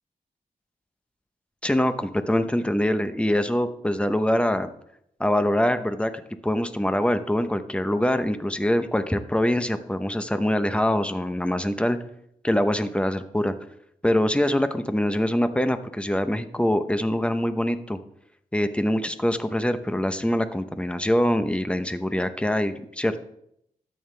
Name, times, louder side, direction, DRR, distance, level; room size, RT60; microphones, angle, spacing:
voice 1, 1.6-4.7 5.2-6.1 6.4-12.0 12.4-13.5 14.0-18.0 18.5-23.2, left 1 dB, 5° left, 9 dB, 0.9 m, -24 dB
13.0 x 8.7 x 3.4 m, 0.74 s
cardioid pair, 60°, 16 cm